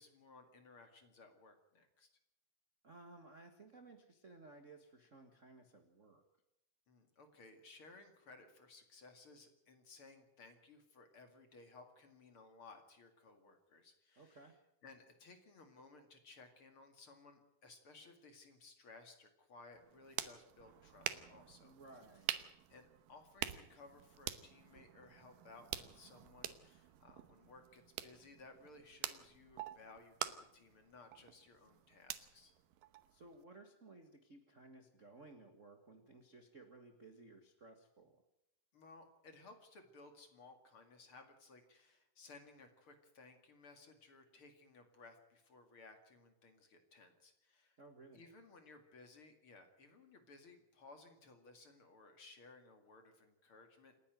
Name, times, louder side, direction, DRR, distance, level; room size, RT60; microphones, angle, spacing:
voice 1, 0.0-2.1 6.9-14.5 14.8-21.7 22.7-32.5 38.7-47.8 48.1-53.9, left 3 dB, 45° left, 6 dB, 2.7 m, -60 dB
voice 2, 2.8-6.2 14.2-14.5 21.6-22.3 33.1-38.2 47.8-48.2, right 2 dB, 35° right, 5 dB, 1.3 m, -58 dB
sound 1, 19.7-33.4, right 12 dB, 90° right, 2.6 m, -47 dB
28.0 x 10.0 x 9.2 m, 0.84 s
omnidirectional pair, 3.8 m